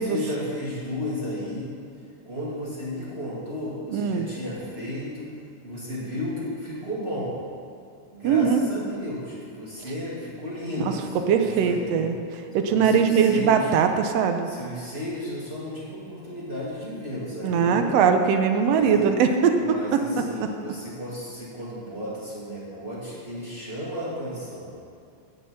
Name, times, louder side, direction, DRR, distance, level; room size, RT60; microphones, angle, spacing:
voice 1, 0.0-1.7 2.2-5.3 5.6-7.4 8.1-12.1 12.7-13.7 14.4-17.9 18.6-19.1 19.6-24.7, left 1 dB, 20° right, -8 dB, 2.2 m, -33 dB
voice 2, 3.9-4.3 8.2-8.7 10.8-10.9 11.3-12.2 12.5-14.5 17.4-19.5 19.9-20.0, right 6 dB, 75° right, 6 dB, 1.5 m, -21 dB
10.0 x 6.1 x 8.6 m, 2.4 s
omnidirectional pair, 3.6 m